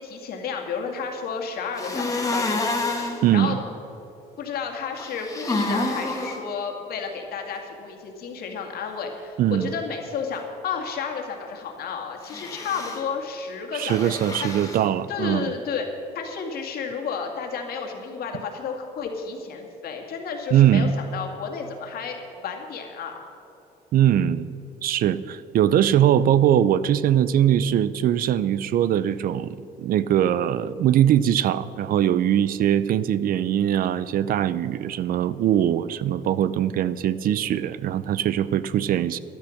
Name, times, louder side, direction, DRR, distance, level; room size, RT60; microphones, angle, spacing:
voice 1, 0.0-2.9 3.3-3.7 4.4-14.1 14.4-14.5 15.1-15.9 16.1-23.2, left 6 dB, 65° left, 2 dB, 2.2 m, -32 dB
sound 1, 1.8-3.2 5.0-6.4 12.2-13.0 13.8-14.8, left 2 dB, 20° left, 2.0 m, -28 dB
voice 2, 3.2-3.6 9.4-9.7 13.7-15.5 20.5-20.9 23.9-24.5 24.8-29.5 29.8-39.2, right 10 dB, 60° right, 16 dB, 0.5 m, -21 dB
12.0 x 11.5 x 6.4 m, 2.9 s
cardioid pair, 110°, 17 cm